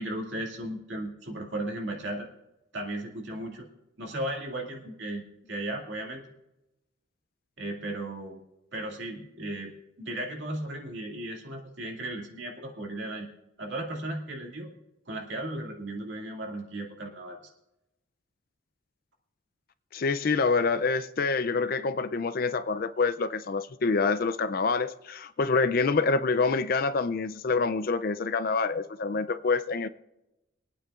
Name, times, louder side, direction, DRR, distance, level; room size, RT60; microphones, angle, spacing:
voice 1, 0.0-2.3 2.7-3.7 4.0-6.3 7.6-8.4 8.7-9.7 10.0-13.3 13.6-14.7 15.1-17.4, right 1 dB, 60° right, 0 dB, 2.2 m, -35 dB
voice 2, 19.9-29.9, left 4 dB, 45° left, 12 dB, 0.4 m, -26 dB
25.0 x 9.1 x 2.4 m, 0.94 s
head